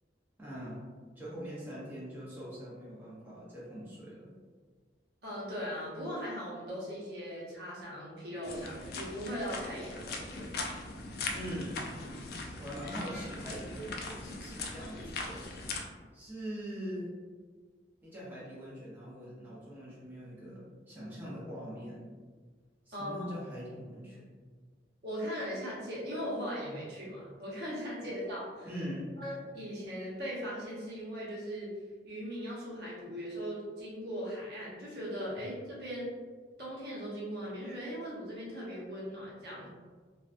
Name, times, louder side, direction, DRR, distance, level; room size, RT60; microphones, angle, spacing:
voice 1, 0.4-0.8 1.2-4.3 11.3-11.8 12.6-15.4 16.1-17.1 18.0-22.0 22.9-24.2 28.6-29.1, equal, 10° right, -9 dB, 0.5 m, -42 dB
voice 2, 5.2-10.2 22.9-23.3 25.0-28.7 29.2-31.7 32.0-36.1 36.6-39.7, equal, 60° right, -7 dB, 0.9 m, -39 dB
sound 1, 8.4-15.8, left 3 dB, 55° left, 0.3 m, -40 dB
2.6 x 2.1 x 2.4 m, 1.5 s
head